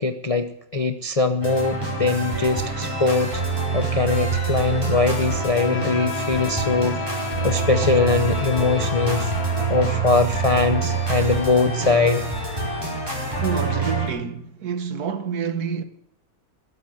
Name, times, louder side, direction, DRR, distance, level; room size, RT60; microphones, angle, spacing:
voice 1, 0.0-3.4 3.7-9.3 9.7-12.2, left 4 dB, 55° left, 0.4 m, -22 dB
sound 1, 1.4-14.1, right 3 dB, 15° right, 4.8 m, -26 dB
Bowed string instrument, 5.1-10.3, left 4 dB, 85° left, 2.3 m, -32 dB
voice 2, 13.4-15.8, right 6 dB, 70° right, 1.7 m, -28 dB
20.0 x 8.7 x 7.6 m
omnidirectional pair, 1.7 m